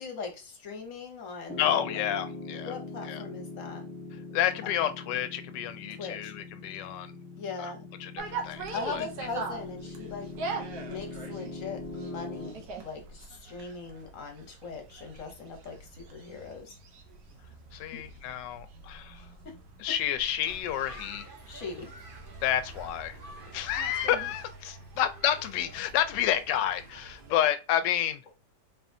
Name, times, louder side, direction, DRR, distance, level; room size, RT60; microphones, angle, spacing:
voice 1, 0.0-2.0 2.6-3.8 6.0-6.3 7.4-7.8 8.7-10.3 10.9-16.8 17.9-18.0 19.4-19.5 21.5-21.9, left 4 dB, 55° left, 1.0 m, -40 dB
Piano, 1.5-12.5, left 3 dB, 10° left, 1.2 m, -42 dB
voice 2, 1.6-2.7 3.0-3.2 4.1-7.2 7.6-7.7 8.0-9.0 17.7-19.3 19.8-21.3 22.4-23.2 23.5-28.2, left 11 dB, 90° left, 1.2 m, -30 dB
sound 1, 8.2-24.4, right 4 dB, 70° right, 1.3 m, -43 dB
sound 2, 20.4-27.4, right 2 dB, 45° right, 0.8 m, -48 dB
4.0 x 3.4 x 2.6 m
omnidirectional pair, 1.9 m